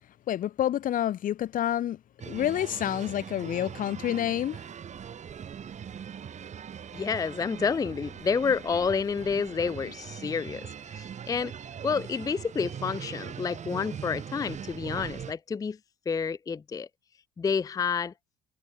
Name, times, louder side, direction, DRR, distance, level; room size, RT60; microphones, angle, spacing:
voice 1, 0.3-4.6, left 11 dB, 55° left, 0.9 m, -28 dB
sound 1, 2.2-15.3, right 8 dB, 45° right, 3.2 m, -41 dB
voice 2, 6.9-11.5 11.8-15.8 16.1-16.9 17.4-18.1, left 5 dB, 20° left, 0.5 m, -29 dB
cardioid pair, 110°, 17 cm